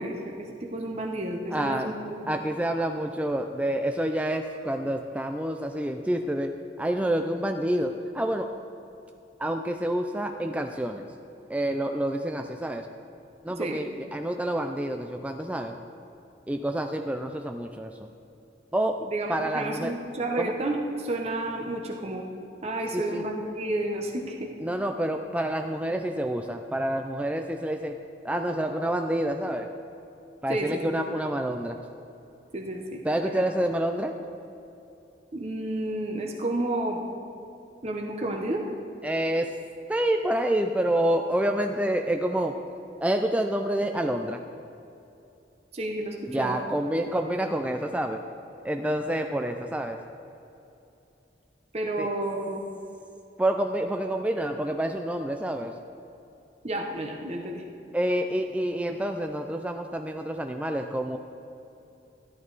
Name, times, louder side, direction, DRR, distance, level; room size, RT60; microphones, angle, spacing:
voice 1, 0.0-2.2 13.6-13.8 19.0-22.2 22.6-24.5 30.5-31.0 32.5-33.3 35.3-37.0 37.8-38.6 45.7-46.6 51.7-52.6 56.6-57.6, right 1 dB, 35° right, 1 dB, 0.9 m, -31 dB
voice 2, 1.5-1.9 2.3-8.5 9.4-11.0 11.5-12.9 13.4-15.8 16.5-17.9 18.7-19.0 19.3-19.9 20.4-20.5 22.9-23.2 24.6-28.0 28.2-29.7 30.4-31.8 33.0-34.1 39.0-39.6 39.9-42.6 43.0-44.4 46.3-48.2 48.6-50.0 52.0-52.1 53.4-55.7 57.9-61.2, right 1 dB, 10° right, 5 dB, 0.4 m, -28 dB
13.5 x 11.5 x 4.0 m, 2.8 s
head